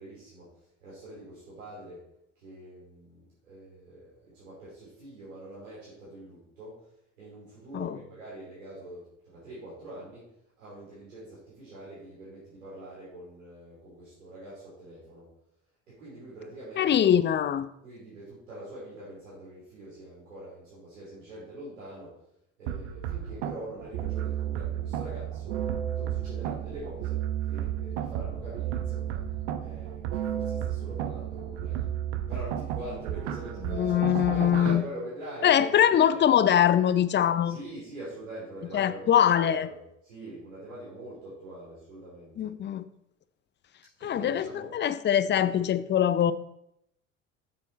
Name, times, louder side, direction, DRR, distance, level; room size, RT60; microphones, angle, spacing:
voice 1, 0.0-2.0 2.4-6.8 7.2-15.3 15.9-17.1 17.8-22.1 22.6-25.6 25.9-29.2 29.6-31.9 32.3-35.8 36.1-36.2 37.4-42.5 44.0-44.7, right 1 dB, 80° right, -8 dB, 3.6 m, -44 dB
voice 2, 16.8-17.7 33.7-34.8 35.4-37.6 38.7-39.7 42.4-42.8 44.0-46.3, left 10 dB, 30° left, 14 dB, 0.6 m, -23 dB
sound 1, 22.7-34.8, right 10 dB, 65° right, 1.0 m, -32 dB
8.3 x 7.6 x 4.3 m, 0.77 s
figure-of-eight pair, 65°, 38 cm